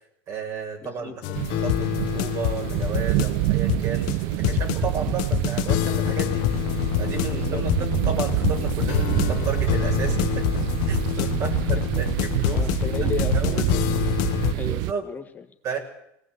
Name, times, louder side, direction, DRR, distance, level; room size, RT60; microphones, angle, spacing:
voice 1, 0.3-6.5 7.0-12.7 13.0-13.7 14.7-15.1 15.6-15.8, right 6 dB, 45° right, 3 dB, 6.6 m, -33 dB
voice 2, 0.8-1.2 7.3-7.6 11.4-11.8 12.5-14.2 14.5-15.4, left 6 dB, 20° left, 4 dB, 1.7 m, -35 dB
sound 1, 1.2-14.5, left 18 dB, 65° left, 1.0 m, -26 dB
sound 2, 1.3-14.9, right 19 dB, 65° right, 0.8 m, -26 dB
20.5 x 18.0 x 8.1 m, 0.78 s
supercardioid pair, 120°, 8 cm